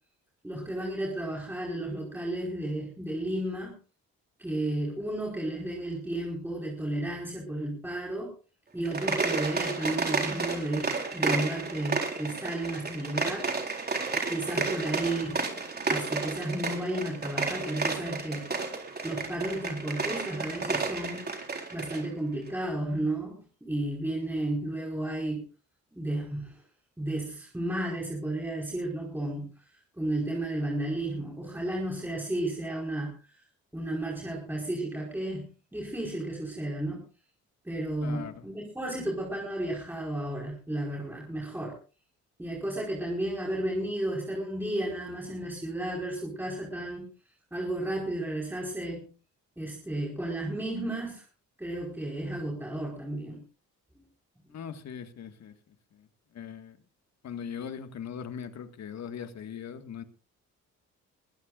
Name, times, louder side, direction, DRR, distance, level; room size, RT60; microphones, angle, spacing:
voice 1, 0.4-3.8 4.4-8.3 8.7-14.0 14.3-15.5 15.8-18.5 19.0-21.2 21.7-25.4 25.9-26.6 27.0-29.5 30.0-33.4 33.7-37.1 37.6-41.7 42.4-47.1 47.5-49.0 49.6-51.2 51.6-53.4 53.9-54.0, right 1 dB, 5° right, -2 dB, 5.0 m, -33 dB
sound 1, 8.8-22.1, right 4 dB, 35° right, 4.0 m, -32 dB
voice 2, 38.0-38.5 54.5-56.1 56.3-56.8 57.2-60.0, left 7 dB, 60° left, 8 dB, 1.9 m, -40 dB
22.0 x 15.0 x 2.6 m, 0.35 s
cardioid pair, 90°, 30 cm